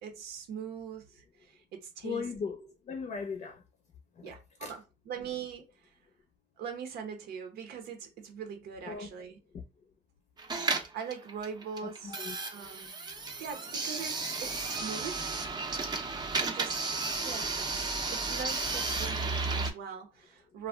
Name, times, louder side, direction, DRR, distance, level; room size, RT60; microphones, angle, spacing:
voice 1, 0.0-2.3 2.6-2.7 4.2-6.0 6.6-9.4 10.9-12.2 12.5-12.9 13.4-15.3 16.4-16.9 17.2-20.7, right 7 dB, 75° right, 0.7 m, -42 dB
voice 2, 2.0-3.6 4.2-4.3 4.6-4.7 8.8-9.1 9.5-9.6 11.8-12.4, left 5 dB, 45° left, 0.6 m, -38 dB
sound 1, 10.4-19.7, right 3 dB, 25° right, 0.5 m, -33 dB
2.4 x 2.1 x 3.4 m
cardioid pair, 110°, 17 cm